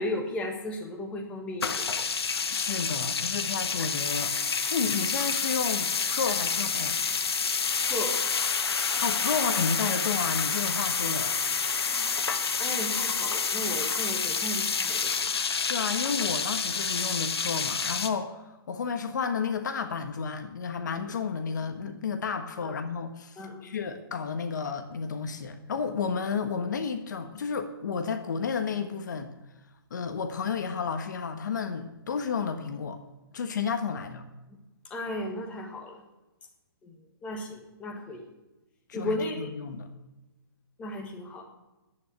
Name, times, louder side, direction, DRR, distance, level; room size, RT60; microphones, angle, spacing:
voice 1, 0.0-1.8 7.8-8.2 11.8-12.1 12.6-15.3 21.1-21.2 22.6-22.7 23.4-23.7 34.9-36.0 36.8-38.2 38.9-39.5 40.8-41.4, left 1 dB, 10° left, 1 dB, 1.4 m, -35 dB
sound 1, 1.6-18.1, left 5 dB, 80° left, 1.4 m, -28 dB
voice 2, 2.5-7.0 9.0-11.3 15.7-29.3 29.9-33.0 33.3-34.2 38.9-39.9, left 6 dB, 50° left, 8 dB, 1.4 m, -32 dB
10.5 x 9.0 x 9.4 m, 1.0 s
hypercardioid pair, 170°, 13 cm